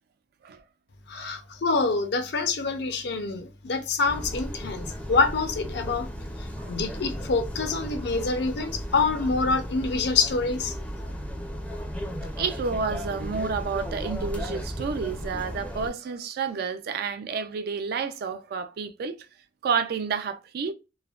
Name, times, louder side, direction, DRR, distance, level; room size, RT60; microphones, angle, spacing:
voice 1, 1.1-6.1 6.4-10.8, left 4 dB, 65° left, 0.5 m, -26 dB
sound 1, 4.0-15.9, equal, 5° left, 0.4 m, -35 dB
voice 2, 12.4-19.2 19.6-20.7, right 5 dB, 60° right, 0.3 m, -30 dB
3.2 x 2.1 x 2.3 m
head